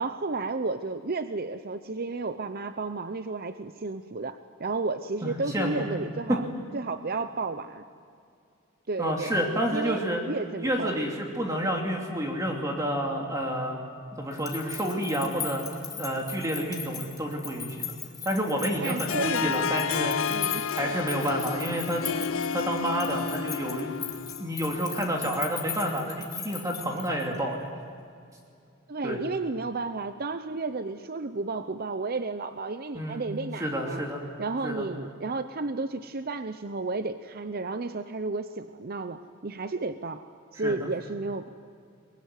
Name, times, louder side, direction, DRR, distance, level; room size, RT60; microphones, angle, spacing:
voice 1, 0.0-6.4 6.7-7.8 8.9-9.3 9.7-11.0 18.8-19.6 20.3-21.0 28.9-34.0 34.4-40.2 40.5-41.5, right 3 dB, 45° right, 10 dB, 0.7 m, -32 dB
voice 2, 5.2-5.8 6.3-6.4 9.0-10.2 10.6-13.8 14.2-15.6 16.0-17.9 18.2-20.2 20.8-22.0 22.5-24.0 24.4-27.6 29.0-29.2 32.9-33.3 33.6-34.2 34.6-34.8 40.6-40.8, equal, 15° right, 0 dB, 2.7 m, -29 dB
sound 1, 14.3-27.4, left 7 dB, 20° left, 2.8 m, -39 dB
Harp, 19.1-24.5, left 6 dB, 75° left, 0.5 m, -31 dB
23.5 x 21.5 x 9.6 m, 2.4 s
head